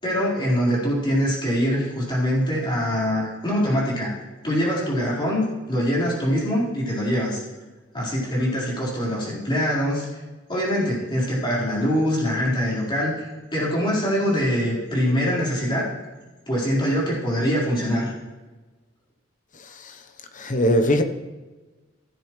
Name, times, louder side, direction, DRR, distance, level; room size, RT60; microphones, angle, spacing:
voice 1, 0.0-4.1 4.4-7.4 7.9-10.2 10.5-13.1 13.5-15.9 16.5-18.1, equal, 25° left, 4.4 m, -23 dB
voice 2, 20.3-21.0, equal, 40° left, 1.0 m, -20 dB
16.0 x 9.7 x 3.2 m
head